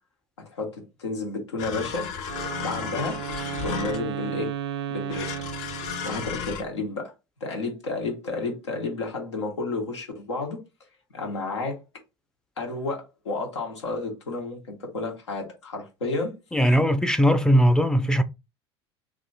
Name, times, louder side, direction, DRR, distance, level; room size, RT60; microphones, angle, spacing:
voice 1, 0.5-2.1 2.6-3.2 3.6-4.5 4.9-5.3 6.0-7.1 7.4-10.6 11.1-11.8 12.6-16.3, left 3 dB, 90° left, 1.2 m, -31 dB
sound 1, 1.6-4.2 5.1-6.6, left 7 dB, 60° left, 0.9 m, -33 dB
Wind instrument woodwind instrument, 2.2-6.4, right 10 dB, 80° right, 0.5 m, -34 dB
voice 2, 16.5-18.2, equal, 5° left, 0.4 m, -19 dB
3.0 x 2.5 x 3.9 m
hypercardioid pair, 80°, 14 cm